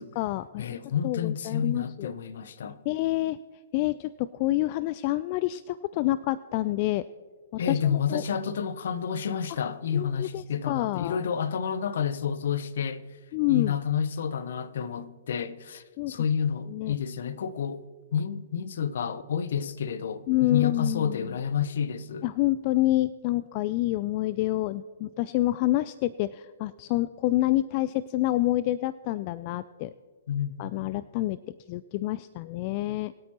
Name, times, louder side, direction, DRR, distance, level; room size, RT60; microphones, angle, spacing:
voice 1, 0.0-0.8 1.0-2.1 2.9-3.4 3.7-7.0 7.5-8.2 9.9-11.2 13.3-13.7 16.0-16.1 16.7-16.9 20.3-21.3 22.2-29.9 30.6-31.4 31.7-33.1, left 16 dB, 40° left, 0.3 m, -27 dB
voice 2, 0.6-2.8 7.6-13.0 13.5-17.8 18.1-22.3 30.3-30.9, left 7 dB, 65° left, 0.7 m, -30 dB
22.0 x 8.6 x 3.0 m
hypercardioid pair, 125°, 0 cm